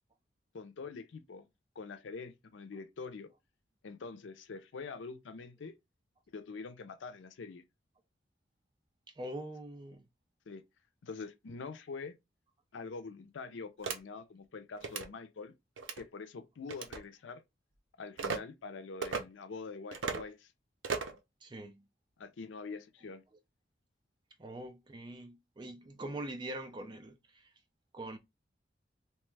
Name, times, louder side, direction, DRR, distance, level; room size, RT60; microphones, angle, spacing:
voice 1, 0.5-1.5 1.8-3.3 3.8-5.8 6.3-7.6 10.5-10.6 11.0-12.1 12.7-15.5 16.0-17.4 18.0-20.5 22.2-23.2, left 4 dB, 85° left, 0.5 m, -45 dB
voice 2, 9.2-10.1 21.4-21.8 24.4-27.5 27.9-28.2, right 1 dB, 25° right, 0.4 m, -43 dB
sound 1, 13.8-14.0 14.8-15.1 15.8-16.0 16.7-17.0 18.2-18.4 19.0-19.2 19.9-20.2 20.8-21.2, right 5 dB, 90° right, 0.5 m, -36 dB
2.9 x 2.2 x 3.2 m
head